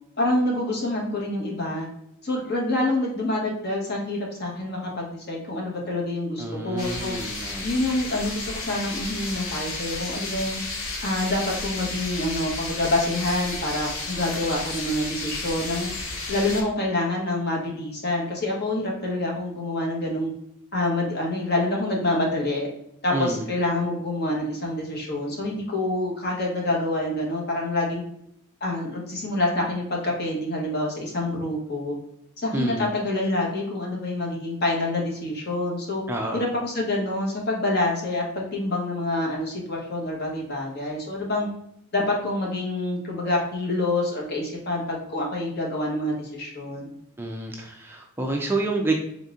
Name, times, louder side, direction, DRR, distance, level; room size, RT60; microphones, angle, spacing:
voice 1, 0.2-1.9 2.2-7.1 7.6-10.6 11.0-15.9 16.3-20.3 20.7-22.7 23.0-28.0 28.6-31.9 32.4-36.0 36.3-41.5 41.9-46.9, left 2 dB, 50° left, -1 dB, 1.1 m, -27 dB
voice 2, 6.4-7.7 23.1-23.5 32.5-32.9 36.1-36.4 47.2-49.0, right 2 dB, 10° right, 1 dB, 0.3 m, -28 dB
sound 1, 6.8-16.6, left 2 dB, 80° left, 0.9 m, -33 dB
4.0 x 3.6 x 2.4 m, 0.75 s
head